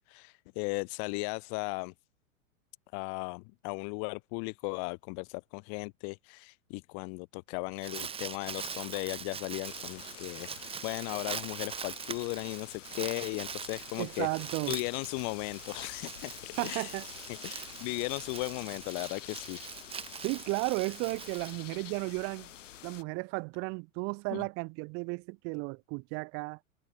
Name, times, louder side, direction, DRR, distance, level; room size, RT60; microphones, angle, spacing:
voice 1, 0.0-1.9 2.9-14.3 14.7-16.4 16.6-17.0 17.4-19.6 24.3-24.4, left 40 dB or more, 25° left, 0.6 m, -36 dB
Crumpling crinkling, 7.5-22.2, right 7 dB, 15° right, 1.6 m, -42 dB
sound 1, 9.6-23.0, left 11 dB, 60° left, 1.5 m, -49 dB
voice 2, 14.0-14.7 16.6-17.0 20.2-22.5 22.8-26.6, right 33 dB, 30° right, 1.0 m, -34 dB
figure-of-eight pair, 100°, 42 cm